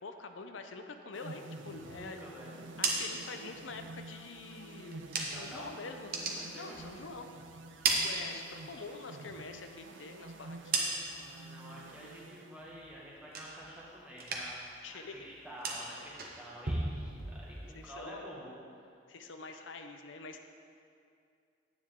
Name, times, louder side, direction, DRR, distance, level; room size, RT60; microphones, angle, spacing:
voice 1, 0.0-2.2 2.8-7.3 7.9-11.1 14.8-15.3 17.7-18.4 19.1-20.6, left 3 dB, 85° left, 6 dB, 0.6 m, -46 dB
sound 1, 1.1-13.0, right 2 dB, 85° right, 0.6 m, -49 dB
voice 2, 1.6-3.2 3.5-3.6 5.2-5.7 6.4-6.8 8.1-8.3 11.1-14.6 14.9-18.5, equal, 5° right, -6 dB, 1.7 m, -49 dB
sound 2, 2.7-5.6 5.9-7.3 7.6-8.9 9.2-11.4 11.7-12.2 12.5-13.9 14.1-14.7 15.0-17.9, right 3 dB, 50° right, 1.1 m, -37 dB
9.8 x 9.6 x 3.7 m, 2.4 s
head